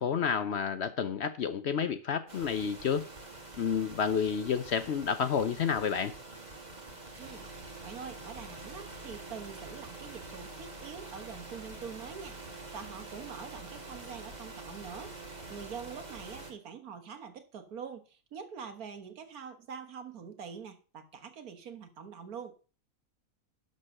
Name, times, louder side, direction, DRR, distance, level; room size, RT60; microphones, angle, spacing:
voice 1, 0.0-3.1 3.6-6.1, left 7 dB, 60° left, 0.7 m, -30 dB
sound 1, 2.3-16.5, right 2 dB, 30° right, 1.9 m, -46 dB
voice 2, 7.2-22.6, right 6 dB, 80° right, 1.8 m, -45 dB
11.5 x 4.0 x 6.5 m
omnidirectional pair, 1.6 m